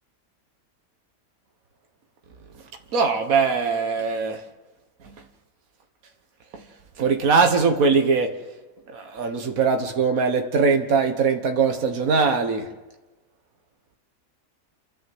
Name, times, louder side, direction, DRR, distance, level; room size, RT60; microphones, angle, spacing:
voice 1, 2.9-4.4 7.0-8.3 8.9-12.7, right 5 dB, 70° right, 1.8 m, -21 dB
27.5 x 12.5 x 7.9 m
omnidirectional pair, 1.6 m